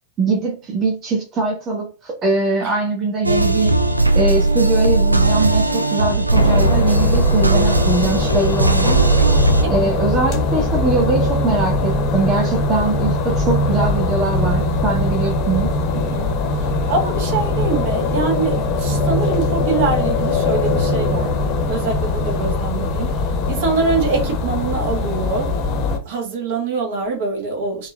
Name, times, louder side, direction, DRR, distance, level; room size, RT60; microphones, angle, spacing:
voice 1, 0.2-3.7 4.1-9.0 9.7-15.7, right 3 dB, 30° right, 1.3 m, -21 dB
sound 1, 3.2-9.6, right 2 dB, 85° right, 0.4 m, -17 dB
sound 2, 6.3-26.0, left 2 dB, 40° left, 0.9 m, -21 dB
voice 2, 15.9-21.4 21.7-25.5 26.0-27.9, right 4 dB, 50° right, 1.5 m, -24 dB
4.5 x 2.9 x 2.5 m
figure-of-eight pair, 90°, 0 cm